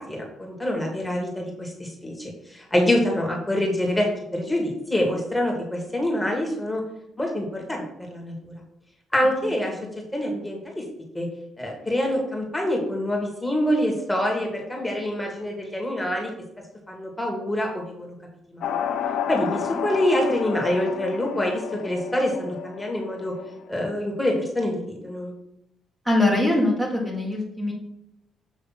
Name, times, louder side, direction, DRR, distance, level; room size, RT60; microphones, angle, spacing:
voice 1, 0.0-6.8 7.2-7.8 8.1-8.3 9.1-9.8 10.1-10.8 11.1-11.3 11.6-16.3 16.9-18.1 18.5-18.6 19.3-23.3 23.7-25.3, left 1 dB, 10° left, 0 dB, 1.9 m, -25 dB
sound 1, 18.6-23.6, left 8 dB, 75° left, 0.6 m, -31 dB
voice 2, 26.0-27.7, left 1 dB, 10° right, -3 dB, 1.7 m, -22 dB
7.3 x 3.3 x 5.8 m, 0.81 s
cardioid pair, 90°, 0 cm